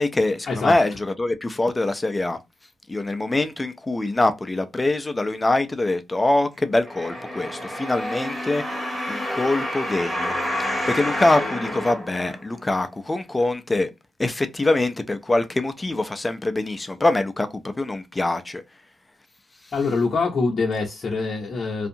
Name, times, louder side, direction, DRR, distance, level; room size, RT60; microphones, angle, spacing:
voice 1, 0.0-2.4 2.9-8.8 9.1-10.3 10.6-13.9 14.2-18.6, left 2 dB, 20° left, 0.4 m, -24 dB
sound 1, 6.9-12.8 13.4-13.5, left 1 dB, 10° right, 1.2 m, -29 dB
voice 2, 19.7-21.9, left 4 dB, 50° left, 0.7 m, -24 dB
2.6 x 2.3 x 2.6 m
cardioid pair, 85°, 0 cm